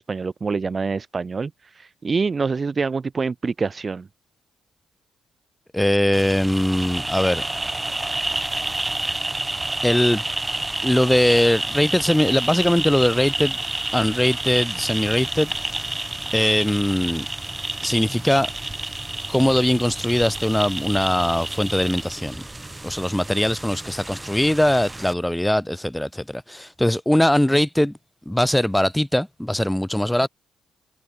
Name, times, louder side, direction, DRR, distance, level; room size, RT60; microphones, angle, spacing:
voice 1, 0.0-4.1, right 4 dB, 35° right, 3.2 m, -26 dB
voice 2, 5.7-7.4 9.8-10.2 10.8-13.6 13.9-15.9 16.3-17.3 17.8-18.5 19.3-22.5 22.8-27.9 28.3-30.3, left 1 dB, 5° left, 1.7 m, -21 dB
sound 1, 6.1-25.1, right 2 dB, 15° right, 4.8 m, -29 dB
cardioid pair, 90°, 0 cm